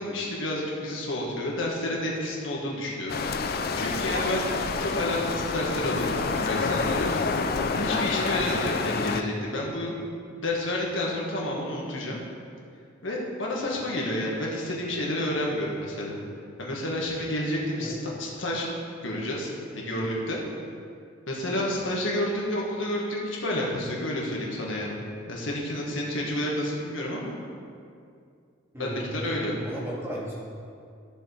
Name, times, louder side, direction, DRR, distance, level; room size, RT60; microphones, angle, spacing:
voice 1, 0.0-3.2 3.7-7.4 7.7-10.0 10.4-12.2 13.0-16.2 16.6-18.7 19.0-20.4 21.3-27.4 28.8-29.6, left 1 dB, 80° left, -3 dB, 1.9 m, -30 dB
sound 1, 3.1-9.2, left 4 dB, 50° left, 0.4 m, -28 dB
voice 2, 8.9-9.2 17.8-18.1 28.7-29.1 29.6-30.4, equal, 15° right, -6 dB, 1.9 m, -36 dB
14.0 x 7.0 x 3.5 m, 2.3 s
head